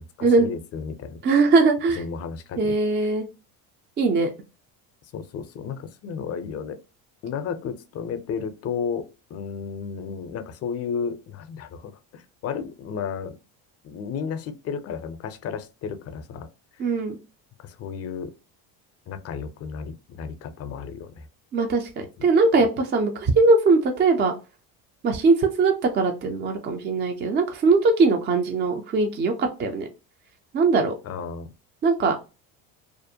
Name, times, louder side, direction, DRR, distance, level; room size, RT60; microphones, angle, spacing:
voice 1, 0.0-1.2 1.9-2.7 3.0-3.1 5.0-6.8 7.2-13.4 13.8-16.5 16.7-17.0 17.6-18.3 19.1-21.3 22.2-22.3 31.0-31.5, left 6 dB, 40° left, 0.5 m, -33 dB
voice 2, 1.2-2.0 2.6-3.3 4.0-4.3 16.8-17.2 21.5-24.3 25.0-29.9 30.5-30.9 31.8-32.2, right 3 dB, 30° right, 0.3 m, -20 dB
2.5 x 2.1 x 2.7 m
supercardioid pair, 105°, 41 cm